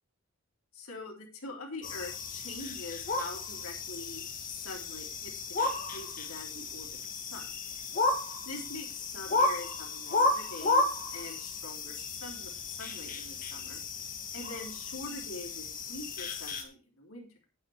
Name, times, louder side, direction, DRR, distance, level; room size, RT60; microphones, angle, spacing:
voice 1, 0.7-7.5 8.5-13.8 14.3-17.3, left 2 dB, 75° left, 0 dB, 3.5 m, -44 dB
sound 1, 1.8-16.6, left 3 dB, 40° left, 1.9 m, -33 dB
9.9 x 9.1 x 4.8 m, 0.32 s
head